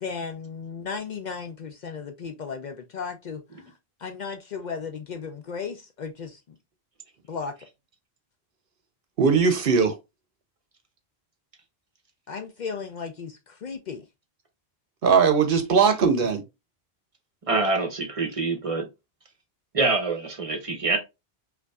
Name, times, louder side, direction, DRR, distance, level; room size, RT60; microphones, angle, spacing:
voice 1, 0.0-3.6 4.0-6.6 7.3-7.5 12.3-14.0, left 5 dB, 55° left, 0.6 m, -35 dB
voice 2, 9.2-10.0 15.0-16.4, right 5 dB, 65° right, 0.8 m, -19 dB
voice 3, 17.5-18.9 19.7-21.0, right 3 dB, 35° right, 0.7 m, -25 dB
5.1 x 2.6 x 2.3 m
omnidirectional pair, 1.0 m